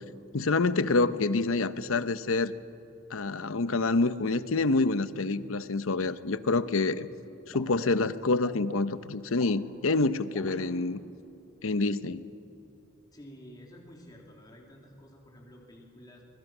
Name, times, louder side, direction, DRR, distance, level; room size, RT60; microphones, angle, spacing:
voice 1, 0.3-2.5 3.1-7.1 7.5-11.0 11.6-12.2, left 3 dB, 75° left, 13 dB, 0.8 m, -27 dB
sound 1, 7.5-8.6 9.2-9.6 10.3-10.7, equal, ahead, 3.1 m, -52 dB
voice 2, 13.1-16.2, equal, 20° left, -1 dB, 2.9 m, -51 dB
25.0 x 22.0 x 6.1 m, 2.9 s
head